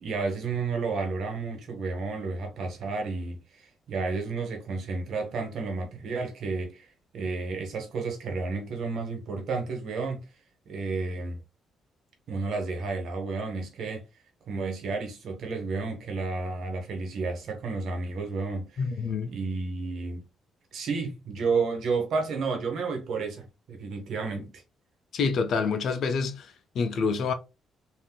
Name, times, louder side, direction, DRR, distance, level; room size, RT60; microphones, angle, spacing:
voice 1, 0.0-6.9 7.1-10.3 10.7-11.4 12.3-14.0 14.5-18.8 19.3-20.2 20.7-24.6, right 4 dB, 70° right, 1.1 m, -31 dB
voice 2, 18.8-19.3 25.1-27.3, left 5 dB, 65° left, 0.6 m, -27 dB
3.6 x 2.5 x 2.3 m
cardioid pair, 90°, 0 cm